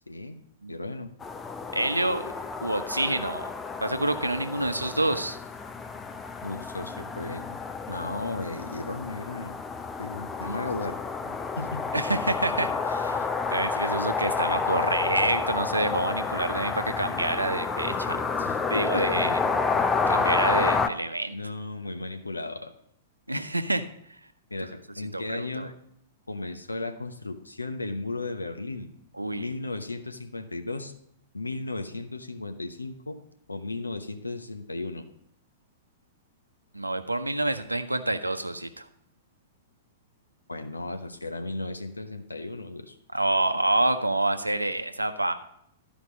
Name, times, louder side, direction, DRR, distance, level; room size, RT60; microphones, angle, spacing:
voice 1, 0.1-0.4 0.7-1.1 6.4-7.6 7.9-9.5 10.0-11.0 11.6-11.9 18.1-19.4 21.3-22.7 24.5-25.7 26.3-28.9 29.4-30.9 31.3-33.2 33.5-35.0 40.5-43.0, left 2 dB, 80° left, 6 dB, 0.9 m, -35 dB
sound 1, 1.2-20.9, left 4 dB, 15° left, 0.5 m, -30 dB
voice 2, 1.7-2.3 2.6-3.5 3.8-5.4 10.5-10.6 11.9-13.2 13.5-18.2 18.7-19.3 20.1-21.3 23.3-23.8 25.1-25.7 29.2-29.5 36.7-38.8 43.1-45.3, right 2 dB, 85° right, 9 dB, 0.7 m, -27 dB
12.5 x 5.2 x 5.1 m, 0.72 s
figure-of-eight pair, 105°, 0 cm